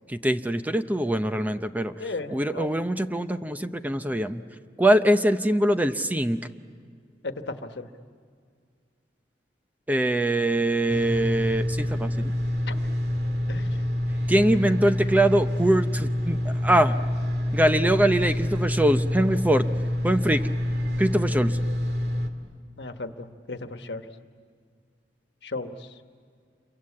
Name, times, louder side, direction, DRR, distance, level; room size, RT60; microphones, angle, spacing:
voice 1, 0.1-1.9 2.3-4.4 4.8-6.4 9.9-12.3 14.3-17.0 17.5-19.7 20.0-20.5 21.0-21.6, right 1 dB, 10° right, 9 dB, 0.7 m, -23 dB
voice 2, 2.0-2.7 7.2-7.9 12.7-12.8 13.5-13.7 22.8-24.0 25.4-25.7, left 3 dB, 75° left, 7 dB, 1.3 m, -35 dB
sound 1, 10.9-22.3, left 1 dB, 70° right, 2.1 m, -27 dB
28.0 x 23.5 x 8.5 m, 2.1 s
head